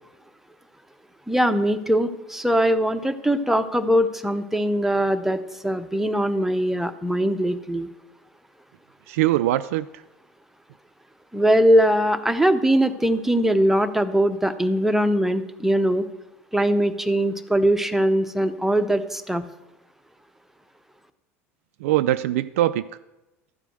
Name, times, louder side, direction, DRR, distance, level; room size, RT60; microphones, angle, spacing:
voice 1, 1.3-7.9 11.3-16.1 16.5-19.4, equal, 5° right, 8 dB, 0.8 m, -21 dB
voice 2, 9.1-10.0 21.8-22.9, right 14 dB, 70° right, 11 dB, 0.3 m, -22 dB
13.0 x 4.9 x 7.9 m, 1.0 s
hypercardioid pair, 75°, 8 cm